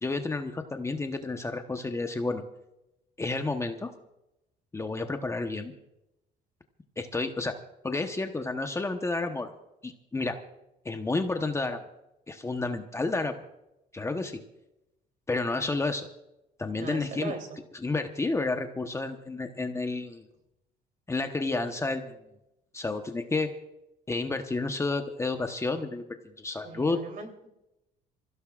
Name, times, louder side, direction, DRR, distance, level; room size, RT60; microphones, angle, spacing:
voice 1, 0.0-2.4 3.2-3.9 4.7-5.7 7.0-7.5 7.8-9.5 9.8-10.4 10.8-11.8 12.3-13.3 13.9-14.4 15.3-16.1 16.6-17.3 17.7-20.3 21.1-22.2 22.7-23.5 24.1-27.0, left 3 dB, 15° left, 6 dB, 1.0 m, -30 dB
voice 2, 16.7-17.4 26.6-27.5, right 4 dB, 50° right, 4 dB, 3.3 m, -39 dB
27.5 x 16.0 x 2.5 m, 0.90 s
cardioid pair, 110°, 17 cm